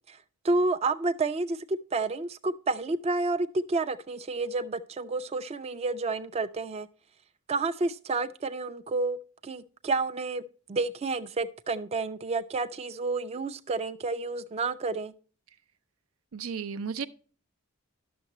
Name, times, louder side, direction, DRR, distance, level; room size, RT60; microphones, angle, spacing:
voice 1, 0.4-6.9 7.5-9.2 9.4-10.4 10.7-15.1, right 3 dB, 30° right, 0.3 m, -30 dB
voice 2, 16.3-17.1, right 6 dB, 90° right, 0.6 m, -33 dB
11.0 x 6.5 x 3.0 m
head